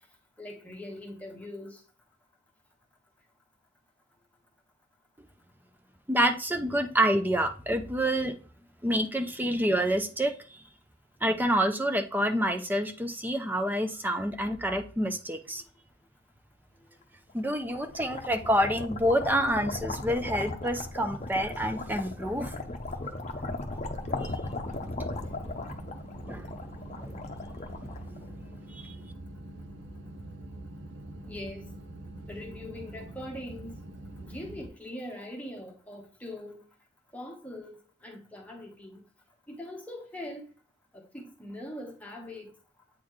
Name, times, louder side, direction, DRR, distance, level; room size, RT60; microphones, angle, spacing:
voice 1, 0.4-1.8 31.3-31.7 32.3-33.8 34.2-36.6 37.1-39.0 39.5-40.5 40.9-42.6, left 1 dB, 5° left, 1.0 m, -42 dB
voice 2, 6.1-8.3 8.8-10.6 11.2-15.6 17.3-22.6 24.2-24.3 26.3-26.5 27.0-27.2 27.8-27.9 28.7-28.9, equal, 10° right, 0.5 m, -28 dB
sound 1, 17.4-28.5, left 2 dB, 35° left, 0.7 m, -37 dB
sound 2, 24.0-34.7, right 1 dB, 65° right, 0.8 m, -44 dB
8.3 x 4.1 x 3.1 m
head